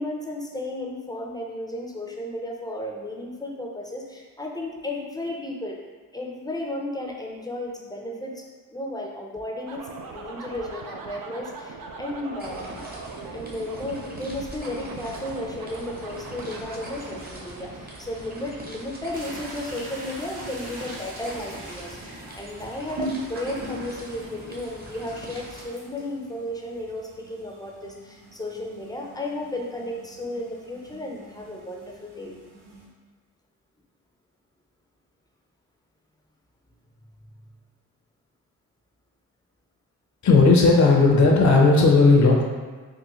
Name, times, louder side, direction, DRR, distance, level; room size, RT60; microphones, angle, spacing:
voice 1, 0.0-5.8 6.1-8.4 8.7-12.8 13.3-32.3, left 1 dB, 10° left, -1 dB, 0.6 m, -34 dB
sound 1, 9.7-19.2, right 4 dB, 65° right, 0.5 m, -40 dB
sound 2, 12.4-25.7, right 1 dB, 25° right, 0.9 m, -42 dB
sound 3, 19.1-32.9, right 1 dB, 90° right, 0.8 m, -41 dB
voice 2, 40.2-42.4, left 3 dB, 50° left, -1 dB, 0.7 m, -15 dB
3.7 x 2.2 x 3.0 m, 1.4 s
supercardioid pair, 50°, 38 cm